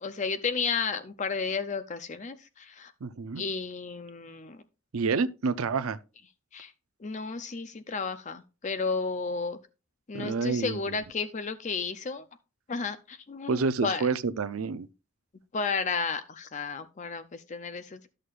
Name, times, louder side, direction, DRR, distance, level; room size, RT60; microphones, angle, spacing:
voice 1, 0.0-2.9 3.4-4.6 6.5-6.7 7.0-9.6 10.1-12.2 12.7-14.1 15.5-18.1, left 4 dB, 35° left, 0.5 m, -32 dB
voice 2, 3.0-3.4 4.9-6.0 10.1-10.8 13.5-14.9, right 4 dB, 80° right, 0.5 m, -28 dB
13.0 x 6.5 x 2.4 m
head